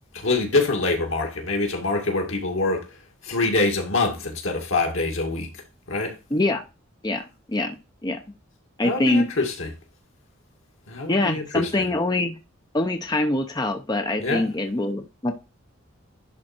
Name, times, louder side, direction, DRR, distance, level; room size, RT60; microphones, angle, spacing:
voice 1, 0.1-2.9 3.2-5.5 5.9-6.1 8.8-9.7 10.9-11.9 14.2-14.5, left 3 dB, 80° left, 2.3 m, -25 dB
voice 2, 6.3-6.6 7.0-7.7 8.0-8.2 8.8-9.3 11.1-12.4 12.7-15.3, left 2 dB, 20° left, 0.7 m, -24 dB
11.0 x 3.8 x 4.4 m
head